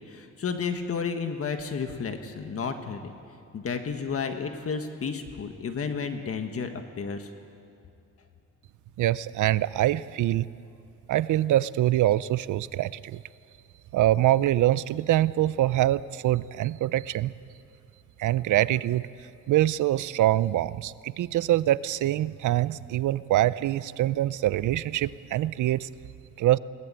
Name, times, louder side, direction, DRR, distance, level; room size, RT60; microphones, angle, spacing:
voice 1, 0.1-3.1 3.5-7.3, left 5 dB, 50° left, 6 dB, 1.5 m, -32 dB
voice 2, 9.0-10.5 11.1-13.2 13.9-17.3 18.2-19.0 19.5-25.9 26.4-26.6, right 14 dB, 90° right, 17 dB, 0.6 m, -24 dB
21.5 x 19.0 x 8.9 m, 2.5 s
cardioid pair, 125°, 29 cm